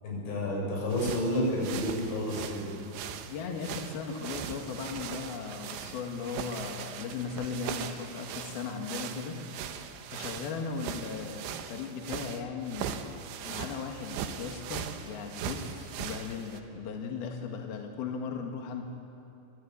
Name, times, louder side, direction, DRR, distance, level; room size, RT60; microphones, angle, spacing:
voice 1, 0.0-2.7, left 1 dB, 85° left, -2 dB, 10.0 m, -30 dB
sound 1, 0.9-16.6, right 8 dB, 75° right, 3.4 m, -40 dB
voice 2, 3.3-9.4 10.1-18.8, left 5 dB, 60° left, 2 dB, 3.3 m, -37 dB
25.0 x 24.5 x 9.8 m, 2.9 s
omnidirectional pair, 5.6 m